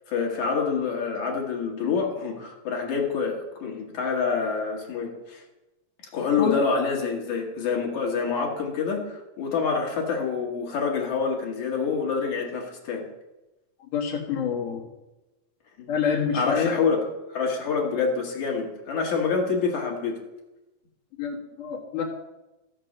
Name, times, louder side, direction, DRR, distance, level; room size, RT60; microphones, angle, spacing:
voice 1, 0.1-5.4 6.1-13.1 15.8-15.9 16.3-20.2, left 5 dB, 70° left, 0 dB, 3.0 m, -27 dB
voice 2, 13.9-14.8 15.9-16.8 21.2-22.0, left 7 dB, 90° left, -4 dB, 3.1 m, -27 dB
13.5 x 6.6 x 6.5 m, 1.0 s
omnidirectional pair, 3.5 m